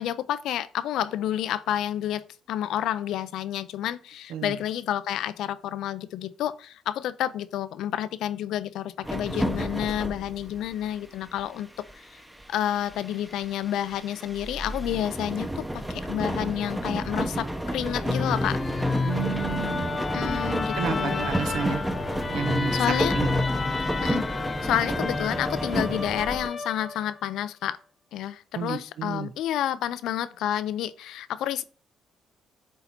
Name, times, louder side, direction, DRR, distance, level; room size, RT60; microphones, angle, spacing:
voice 1, 0.0-11.8 12.5-18.6 20.1-21.3 22.7-23.1 24.0-24.2 24.6-27.8 28.1-31.6, left 11 dB, 85° left, 0.4 m, -29 dB
sound 1, 9.0-11.0 11.2-26.5, right 1 dB, 10° right, 0.7 m, -31 dB
Musical instrument, 18.0-27.2, left 4 dB, 30° left, 0.7 m, -30 dB
voice 2, 19.0-20.0 20.7-21.8 22.3-22.9 23.1-23.3 28.5-29.3, right 7 dB, 85° right, 0.7 m, -31 dB
8.1 x 2.8 x 4.3 m
cardioid pair, 90°, 0 cm